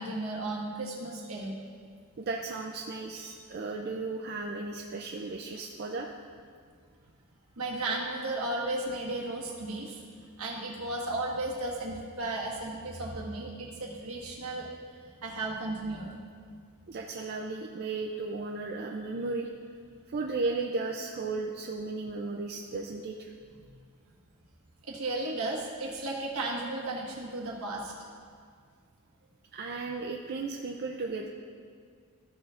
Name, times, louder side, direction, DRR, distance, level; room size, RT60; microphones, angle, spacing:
voice 1, 0.0-1.6 7.6-10.0 10.4-14.7 15.2-16.1 24.9-27.9, right 2 dB, 75° right, -3 dB, 1.5 m, -34 dB
voice 2, 2.2-6.1 16.9-19.5 20.1-23.3 29.5-31.3, right 3 dB, 45° right, 1 dB, 0.4 m, -35 dB
13.5 x 6.8 x 2.5 m, 2.1 s
head